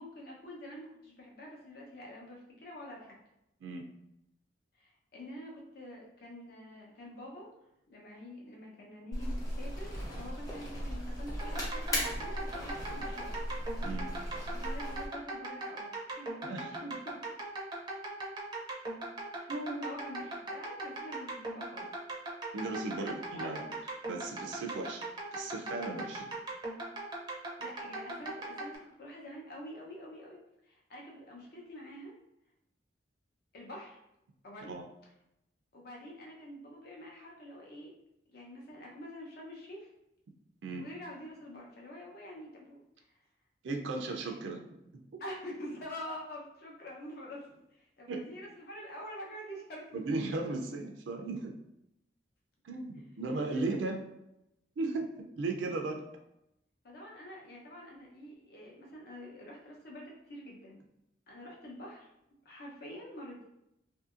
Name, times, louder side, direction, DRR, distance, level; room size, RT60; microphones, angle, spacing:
voice 1, 0.0-3.2 4.7-7.5 7.9-13.3 14.5-17.2 19.3-19.5 19.8-21.9 22.9-23.5 27.6-30.4 30.6-32.1 33.5-34.0 34.4-34.8 35.7-37.9 38.3-39.9 40.8-43.1 45.2-50.4 53.5-53.8 56.8-60.8 61.3-62.1 62.4-63.5, equal, 55° left, -2 dB, 0.7 m, -46 dB
sound 1, 9.1-15.1, equal, 20° left, 0.7 m, -37 dB
sound 2, 11.4-28.8, right 2 dB, 25° right, 0.5 m, -40 dB
voice 2, 16.4-16.8 19.5-20.0 22.5-23.6 24.1-26.3 34.7-34.8 40.6-40.8 43.6-44.6 48.1-48.2 49.9-51.6 52.6-54.0 54.8-55.1 55.4-56.0, right 3 dB, 80° right, 3 dB, 0.4 m, -36 dB
2.7 x 2.6 x 2.4 m, 0.84 s
head